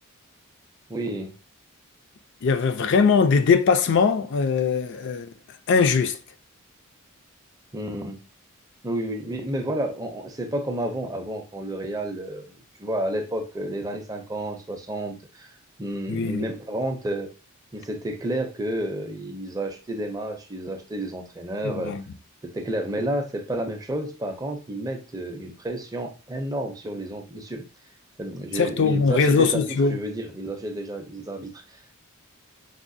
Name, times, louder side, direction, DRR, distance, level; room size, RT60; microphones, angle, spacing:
voice 1, 0.9-1.3 7.7-8.2 8.8-15.5 15.8-17.3 17.7-21.9 22.5-27.6 28.2-31.9, right 1 dB, 15° right, 0.5 m, -31 dB
voice 2, 2.4-5.3 5.7-6.2 16.1-16.4 21.6-22.0 28.5-30.0, left 5 dB, 55° left, 0.4 m, -21 dB
4.8 x 2.1 x 2.6 m
head